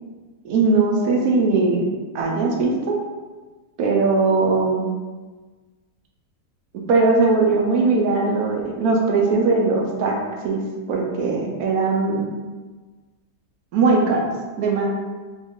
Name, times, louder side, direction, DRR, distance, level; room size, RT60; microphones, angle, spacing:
voice 1, 0.4-1.8 2.1-3.0 3.8-4.9 6.9-10.2 10.4-10.6 10.9-12.3 13.7-14.9, right 3 dB, 75° right, 0 dB, 1.0 m, -19 dB
3.0 x 2.3 x 3.5 m, 1.3 s
omnidirectional pair, 1.7 m